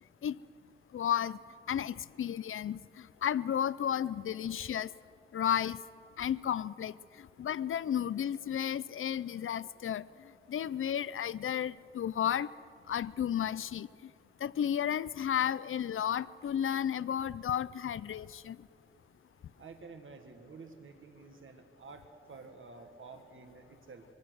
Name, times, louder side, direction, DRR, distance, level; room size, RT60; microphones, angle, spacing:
voice 1, 0.9-1.4 1.7-4.9 5.3-5.8 6.2-6.9 7.4-10.1 10.5-12.5 12.9-13.9 14.4-18.6, left 9 dB, 80° left, 19 dB, 0.4 m, -33 dB
voice 2, 19.6-24.0, right 4 dB, 75° right, 6 dB, 1.6 m, -51 dB
24.5 x 22.5 x 6.3 m, 2.5 s
wide cardioid pair, 125°, 21 cm